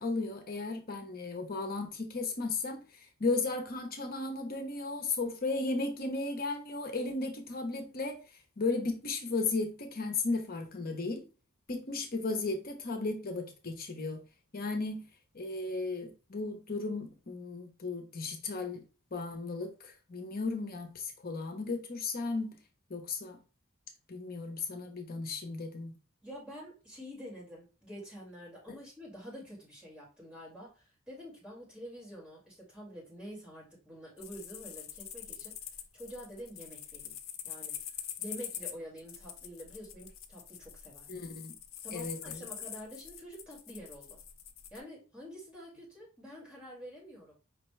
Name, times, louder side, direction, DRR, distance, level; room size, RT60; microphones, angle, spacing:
voice 1, 0.0-8.2 8.6-11.2 11.7-14.2 14.5-15.1 15.3-18.8 19.1-22.6 22.9-23.4 24.1-26.0 41.1-41.5 41.9-42.5, left 3 dB, 45° left, 0.8 m, -35 dB
voice 2, 26.2-35.5 35.9-37.1 37.4-41.1 41.8-44.2 44.7-47.3, equal, 5° right, 2.1 m, -47 dB
sound 1, 34.2-44.8, left 10 dB, 75° left, 0.6 m, -44 dB
5.3 x 2.9 x 3.2 m
head